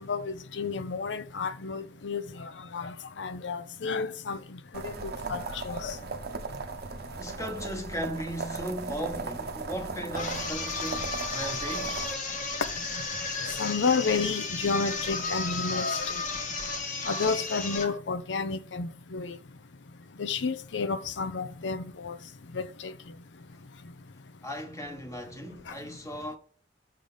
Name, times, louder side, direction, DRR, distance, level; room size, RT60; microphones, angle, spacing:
voice 1, 0.1-4.4 4.8-5.9 13.5-16.2 17.1-19.4 20.2-22.2 22.5-22.9, left 4 dB, 80° left, 0.6 m, -31 dB
sound 1, 4.7-12.1, right 3 dB, 60° right, 0.7 m, -37 dB
voice 2, 7.1-12.1 24.4-26.4, equal, 20° left, 1.2 m, -37 dB
sound 2, 10.1-18.0, left 3 dB, 50° left, 1.1 m, -33 dB
6.6 x 3.4 x 5.5 m
head